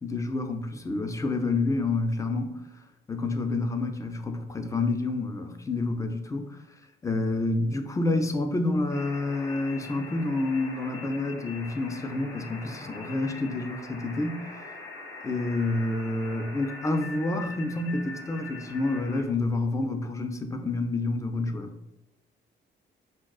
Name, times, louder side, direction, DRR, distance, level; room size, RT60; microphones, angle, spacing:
voice 1, 0.0-2.6 3.1-6.6 7.0-14.5 15.2-21.8, left 2 dB, 15° left, 6 dB, 0.3 m, -28 dB
sound 1, 8.9-19.2, left 3 dB, 80° left, 1.1 m, -43 dB
3.6 x 2.3 x 2.2 m, 0.95 s
cardioid pair, 90°, 20 cm